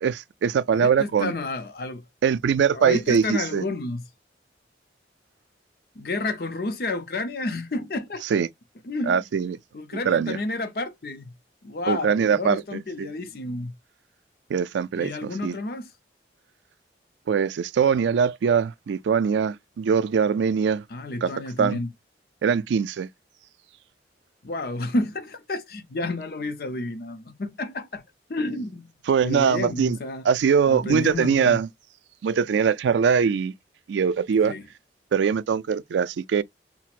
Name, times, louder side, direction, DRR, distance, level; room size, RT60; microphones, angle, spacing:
voice 1, 0.0-1.3 2.2-3.6 8.2-8.5 9.1-9.6 10.1-10.4 11.9-13.1 14.5-15.6 17.3-20.8 21.2-21.3 21.6-21.8 22.4-23.1 29.1-30.0 30.2-31.7 32.2-33.5 33.9-34.5 35.1-36.4, right 6 dB, 80° right, 0.3 m, -22 dB
voice 2, 0.7-2.0 2.7-4.0 6.0-8.2 8.8-9.2 9.7-11.3 11.6-13.7 15.0-15.9 20.9-21.9 24.4-28.0 28.3-28.9 29.2-30.2 30.7-31.6 34.4-34.6, left 2 dB, 55° left, 0.6 m, -30 dB
5.8 x 2.1 x 2.4 m
head